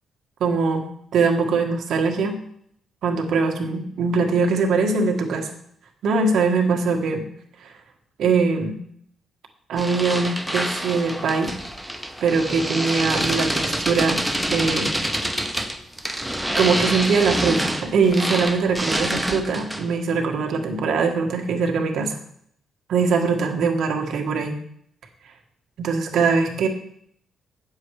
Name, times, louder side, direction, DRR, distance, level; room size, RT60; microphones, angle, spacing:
voice 1, 0.4-0.9 1.1-2.4 3.0-5.5 6.0-7.3 7.6-7.7 8.2-8.8 9.7-11.5 12.2-14.2 14.5-15.0 16.6-22.2 22.9-24.6 25.8-26.7, right 4 dB, 70° right, 3 dB, 1.6 m, -22 dB
sound 1, 9.8-20.0, equal, 5° right, 0.8 m, -26 dB
8.9 x 7.2 x 4.8 m, 0.68 s
cardioid pair, 120°, 0 cm